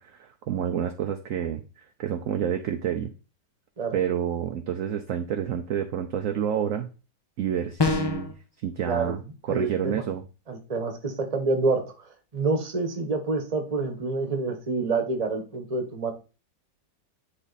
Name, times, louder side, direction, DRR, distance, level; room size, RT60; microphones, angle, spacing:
voice 1, 0.0-3.1 3.9-6.9 7.4-8.3 8.6-9.2 9.5-10.2, right 9 dB, 65° right, 6 dB, 0.8 m, -29 dB
sound 1, 7.8-8.3, left 3 dB, 35° left, 0.4 m, -24 dB
voice 2, 8.8-9.1 9.5-10.0 10.5-11.8 12.3-16.1, right 3 dB, 25° right, 5 dB, 1.0 m, -27 dB
9.8 x 3.6 x 4.1 m, 0.33 s
omnidirectional pair, 2.0 m